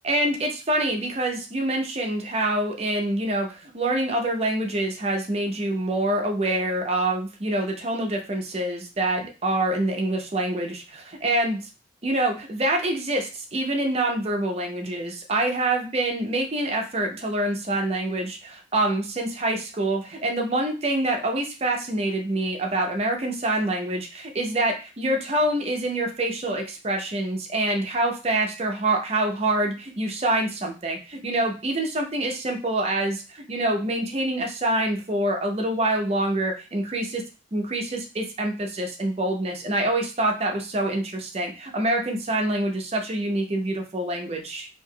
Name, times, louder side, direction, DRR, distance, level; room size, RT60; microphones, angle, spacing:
voice 1, 0.0-11.6 12.0-37.2 37.5-44.7, right 1 dB, 35° right, 2 dB, 0.5 m, -26 dB
3.3 x 2.8 x 2.2 m, 0.32 s
head